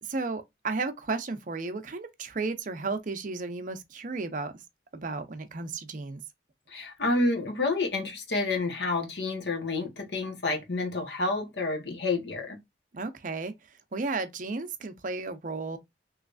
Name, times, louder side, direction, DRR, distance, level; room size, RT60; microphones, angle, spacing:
voice 1, 0.0-4.5 4.9-6.2 12.9-13.5 13.9-15.8, right 3 dB, 45° right, 0.6 m, -33 dB
voice 2, 6.7-12.6, left 3 dB, 70° left, 1.2 m, -29 dB
3.2 x 3.1 x 2.5 m
head